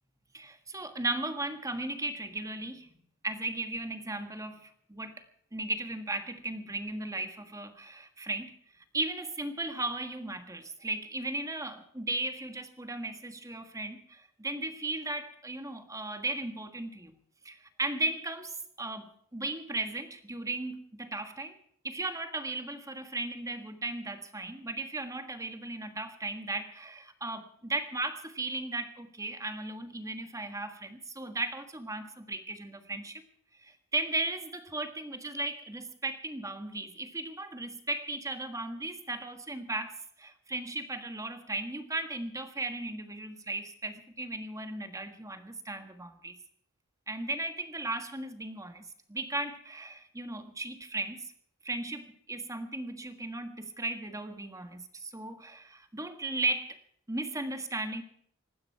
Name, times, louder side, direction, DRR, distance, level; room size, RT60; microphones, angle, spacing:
voice 1, 0.3-2.9 3.2-5.2 5.5-8.5 8.9-17.2 17.4-21.5 21.8-33.2 33.6-46.4 47.1-51.3 51.6-56.8 57.1-58.0, right 2 dB, 15° right, 8 dB, 1.5 m, -36 dB
19.5 x 15.0 x 4.7 m, 0.65 s
head